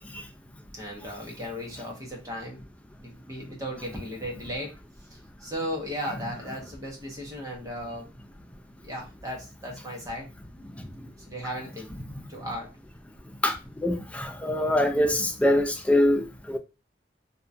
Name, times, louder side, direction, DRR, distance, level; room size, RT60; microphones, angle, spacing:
voice 1, 0.7-2.7 3.0-4.7 5.1-8.1 8.8-10.3 11.3-12.7, equal, 20° right, 0.8 m, -36 dB
voice 2, 13.4-16.6, left 1 dB, 5° left, 0.3 m, -24 dB
2.8 x 2.3 x 2.5 m
head